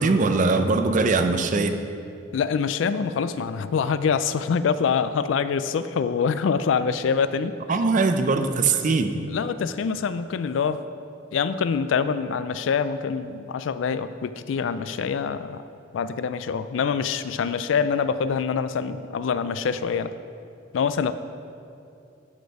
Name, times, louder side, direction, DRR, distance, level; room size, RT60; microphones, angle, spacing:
voice 1, 0.0-1.8 7.7-9.2, right 3 dB, 45° right, 8 dB, 0.5 m, -21 dB
voice 2, 2.3-7.8 9.3-10.8 11.3-15.6 15.9-20.1 20.7-21.1, left 6 dB, 80° left, 13 dB, 0.4 m, -25 dB
11.5 x 4.3 x 4.7 m, 2.6 s
head